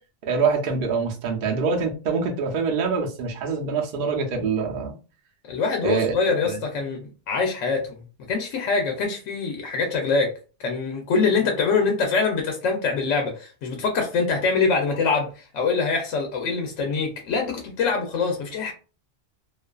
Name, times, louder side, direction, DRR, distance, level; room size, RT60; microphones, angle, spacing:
voice 1, 0.3-5.0 5.8-6.1, right 5 dB, 55° right, 0.7 m, -24 dB
voice 2, 5.4-8.0 8.3-10.3 10.6-18.7, left 4 dB, 90° left, 1.0 m, -24 dB
2.5 x 2.4 x 2.2 m
omnidirectional pair, 1.3 m